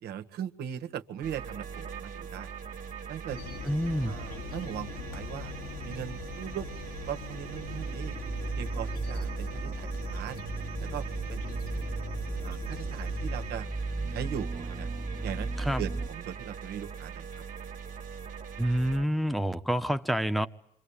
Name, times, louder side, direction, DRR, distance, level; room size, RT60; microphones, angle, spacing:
voice 1, 0.0-2.5 3.1-3.4 4.1-5.5 5.8-6.7 7.1-8.2 8.6-10.4 10.8-11.9 12.4-13.7 14.1-14.9 15.2-15.5 15.8-17.3, right 9 dB, 75° right, 1.8 m, -39 dB
sound 1, 1.2-19.1, right 7 dB, 50° right, 1.9 m, -42 dB
sound 2, 3.3-13.5, left 9 dB, 60° left, 1.4 m, -44 dB
voice 2, 3.6-4.1 15.6-15.8 18.6-20.5, equal, ahead, 1.1 m, -28 dB
sound 3, 7.6-16.1, right 3 dB, 25° right, 1.3 m, -35 dB
27.5 x 24.5 x 8.7 m
cardioid pair, 110°, 17 cm